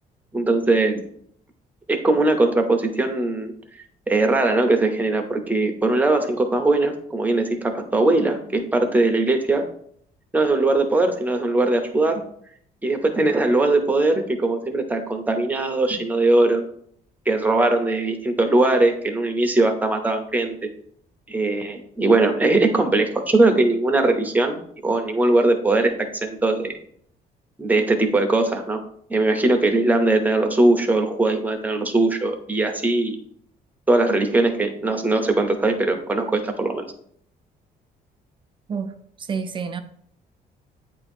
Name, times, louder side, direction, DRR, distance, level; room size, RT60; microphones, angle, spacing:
voice 1, 0.3-1.0 1.9-3.6 4.1-9.7 10.3-12.2 12.8-16.6 17.3-20.6 21.3-25.9 26.2-26.8 27.6-28.8 29.1-33.2 33.9-36.9, right 2 dB, 10° right, 0.8 m, -20 dB
voice 2, 38.7-39.8, right 6 dB, 30° right, 0.5 m, -29 dB
8.6 x 2.9 x 4.3 m
cardioid pair, 145°, 17 cm